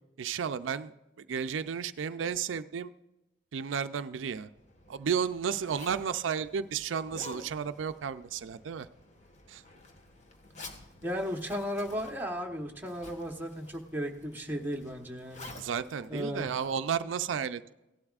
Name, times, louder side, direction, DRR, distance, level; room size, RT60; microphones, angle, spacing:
voice 1, 0.2-0.9 1.2-2.9 3.5-4.5 4.9-8.9 9.5-9.6 15.6-17.7, right 7 dB, 85° right, 11 dB, 0.4 m, -33 dB
Zipper (clothing), 4.4-17.1, left 2 dB, 40° left, 1.4 m, -51 dB
voice 2, 11.0-15.5 16.1-16.6, equal, 10° right, 1 dB, 1.0 m, -35 dB
17.0 x 12.0 x 2.4 m, 0.96 s
head